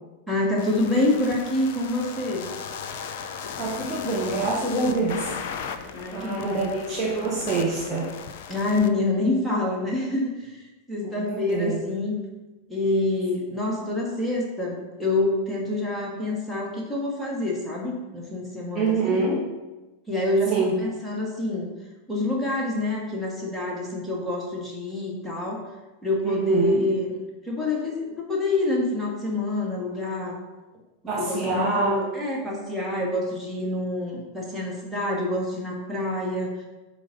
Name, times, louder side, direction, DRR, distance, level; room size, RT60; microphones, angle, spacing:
voice 1, 0.3-2.5 5.9-6.7 8.5-10.6 10.9-12.2 12.7-19.1 20.1-21.7 22.1-25.7 26.0-30.4 31.2-36.6, left 2 dB, ahead, -4 dB, 2.1 m, -27 dB
sound 1, 0.6-8.9, left 6 dB, 50° left, 0.6 m, -37 dB
voice 2, 3.6-5.3 6.1-8.1 11.0-11.8 18.7-19.4 20.5-20.7 26.2-26.8 31.1-32.0, right 3 dB, 20° right, -5 dB, 1.7 m, -26 dB
9.8 x 4.2 x 5.5 m, 1.1 s
figure-of-eight pair, 90°, 0 cm